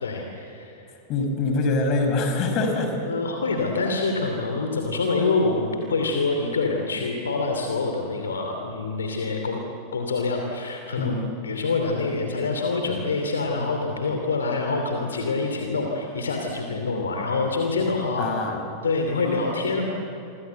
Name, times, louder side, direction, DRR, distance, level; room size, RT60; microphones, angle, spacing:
voice 1, 0.0-0.9 3.1-9.6 9.9-11.1 11.4-18.3 18.8-19.9, left 3 dB, 70° left, 3 dB, 2.8 m, -26 dB
voice 2, 1.1-3.1 11.0-11.3 18.2-18.6, left 3 dB, 40° left, 5 dB, 5.7 m, -24 dB
29.0 x 25.0 x 8.1 m, 2.9 s
figure-of-eight pair, 90°, 0 cm